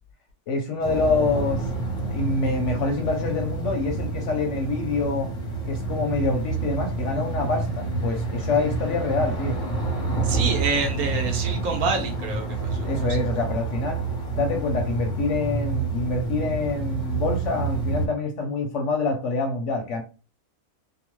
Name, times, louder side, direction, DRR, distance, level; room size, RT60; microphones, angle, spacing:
voice 1, 0.5-1.7 2.0-5.3 5.7-9.6 12.8-14.0 14.3-20.0, left 3 dB, 65° left, 3 dB, 0.8 m, -26 dB
sound 1, 0.8-18.1, right 3 dB, 35° left, 0.5 m, -28 dB
voice 2, 10.2-13.1, right 3 dB, 75° right, 3 dB, 1.2 m, -27 dB
2.9 x 2.1 x 3.0 m, 0.34 s
omnidirectional pair, 1.6 m